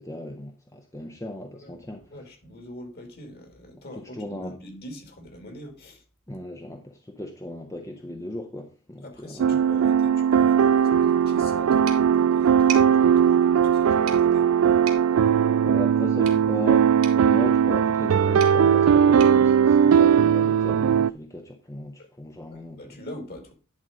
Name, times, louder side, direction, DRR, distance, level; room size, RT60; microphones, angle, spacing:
voice 1, 0.0-2.1 4.0-4.6 6.3-9.6 15.6-22.8, left 1 dB, 15° left, 0.7 m, -37 dB
voice 2, 2.1-6.0 9.0-14.5 22.0-22.1 22.5-23.5, left 1 dB, 45° left, 2.5 m, -43 dB
sound 1, 9.4-21.1, right 8 dB, 65° right, 0.3 m, -19 dB
sound 2, 11.8-20.5, right 8 dB, 85° right, 2.3 m, -42 dB
10.5 x 4.1 x 5.0 m
head